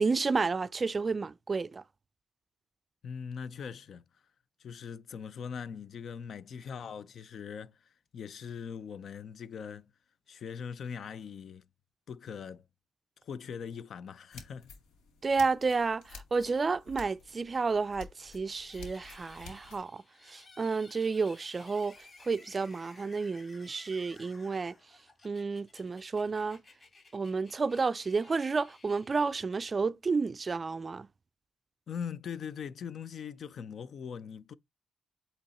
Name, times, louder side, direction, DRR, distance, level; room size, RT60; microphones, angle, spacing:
voice 1, 0.0-1.8 15.2-20.0 20.3-22.0 22.3-24.7 25.2-26.6 27.1-31.1, right 4 dB, 30° right, 0.4 m, -31 dB
voice 2, 3.0-4.0 4.6-9.9 10.3-11.6 12.1-12.6 13.2-14.7 31.9-34.5, left 7 dB, 60° left, 0.5 m, -41 dB
sound 1, 14.3-19.8, left 4 dB, 85° left, 1.9 m, -51 dB
sound 2, 18.6-29.9, left 3 dB, 30° left, 3.6 m, -57 dB
8.2 x 2.9 x 4.2 m
cardioid pair, 90°, 0 cm